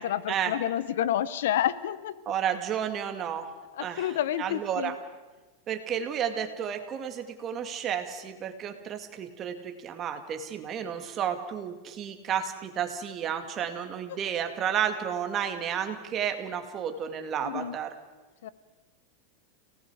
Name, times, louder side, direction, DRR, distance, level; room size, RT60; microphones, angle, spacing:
voice 1, 0.0-2.1 3.7-5.0 14.1-14.2 17.4-17.8 18.4-18.5, left 11 dB, 80° left, 16 dB, 0.9 m, -29 dB
voice 2, 2.3-3.5 3.8-4.9 5.7-17.9, right 8 dB, 30° right, 6 dB, 2.3 m, -32 dB
29.5 x 18.5 x 4.9 m, 1.2 s
supercardioid pair, 135°, 0 cm